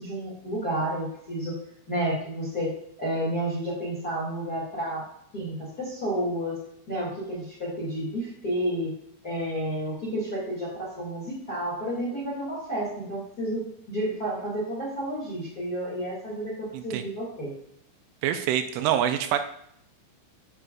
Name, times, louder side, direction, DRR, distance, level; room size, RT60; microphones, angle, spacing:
voice 1, 0.0-1.6 1.9-2.7 3.0-5.0 5.3-6.6 6.9-8.9 9.2-17.5, right 1 dB, 35° left, -6 dB, 1.5 m, -31 dB
voice 2, 18.2-19.4, right 10 dB, 85° right, 8 dB, 3.0 m, -25 dB
9.6 x 6.7 x 2.5 m, 0.72 s
omnidirectional pair, 5.7 m